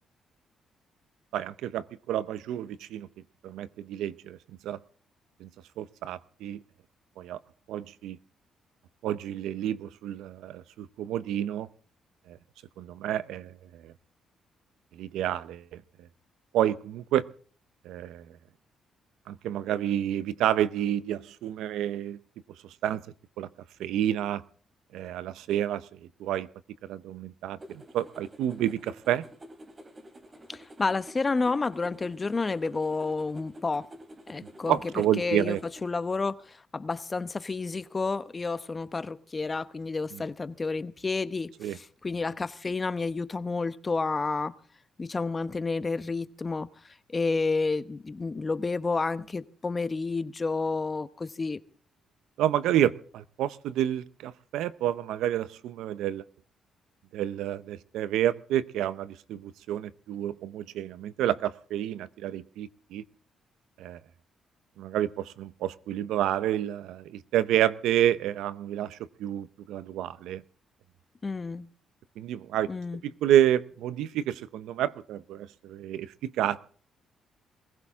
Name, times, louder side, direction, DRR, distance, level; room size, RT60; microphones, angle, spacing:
voice 1, 1.3-3.1 3.4-4.4 4.6-4.8 5.4-5.5 5.8-6.6 7.2-7.4 7.7-8.2 9.0-11.7 12.3-12.4 12.8-13.9 14.9-15.8 16.5-17.3 17.8-18.3 19.3-22.2 22.8-23.0 23.4-23.5 23.8-24.4 24.9-25.9 26.2-26.5 26.8-29.2 34.7-35.6 40.1-40.2 41.6-41.8 52.4-56.2 57.1-63.0 63.8-64.0 64.8-70.4 72.2-72.7 73.0-76.6, right 11 dB, 85° right, 0.7 m, -29 dB
sound 1, 27.6-35.9, equal, 30° right, 2.9 m, -49 dB
voice 2, 30.5-33.9 34.3-34.8 35.2-35.6 35.8-44.5 45.0-46.7 47.1-51.6 71.2-71.7 72.7-73.0, left 3 dB, 30° left, 0.9 m, -30 dB
22.0 x 15.5 x 3.6 m
cardioid pair, 90°, 0 cm